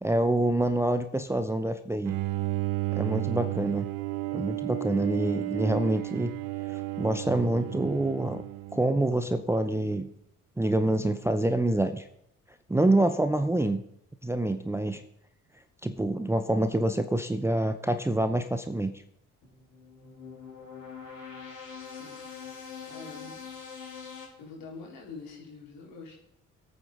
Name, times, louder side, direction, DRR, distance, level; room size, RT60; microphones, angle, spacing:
voice 1, 0.0-2.1 2.9-3.9 4.3-6.3 6.7-8.4 8.7-10.1 10.6-12.1 12.7-13.8 14.2-15.0 15.8-18.9, right 1 dB, 5° right, 8 dB, 0.8 m, -26 dB
Bowed string instrument, 2.1-9.3, right 20 dB, 55° right, 0.7 m, -33 dB
sound 1, 19.4-24.3, left 6 dB, 75° left, 4.9 m, -43 dB
voice 2, 21.9-22.3 22.8-23.4 24.4-26.2, left 4 dB, 60° left, -2 dB, 3.9 m, -45 dB
24.0 x 9.1 x 3.7 m, 0.76 s
figure-of-eight pair, 45°, 40 cm